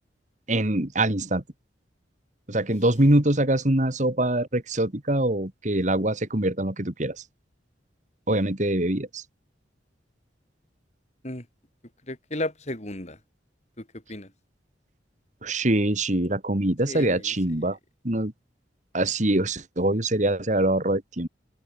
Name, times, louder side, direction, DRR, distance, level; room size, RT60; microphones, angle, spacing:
voice 1, 0.5-1.4 2.5-7.2 8.3-9.2 15.4-17.8 18.0-18.3 18.9-21.3, right 1 dB, 40° right, 2.3 m, -24 dB
voice 2, 12.1-13.2 14.1-14.3 16.8-17.6, left 1 dB, 35° left, 4.0 m, -34 dB
head